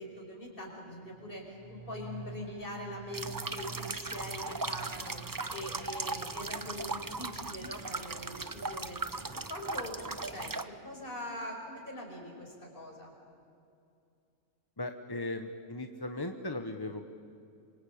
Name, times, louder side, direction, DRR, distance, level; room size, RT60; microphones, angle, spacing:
voice 1, 0.0-5.2 5.5-13.1, left 1 dB, 40° left, 0 dB, 5.5 m, -43 dB
sound 1, 0.9-10.3 10.6-10.7, right 6 dB, 80° right, 2.3 m, -50 dB
sound 2, 3.1-10.6, right 3 dB, 25° right, 0.5 m, -38 dB
voice 2, 14.8-17.1, left 2 dB, 20° left, 6 dB, 1.0 m, -37 dB
26.5 x 24.0 x 8.6 m, 2.5 s
omnidirectional pair, 1.4 m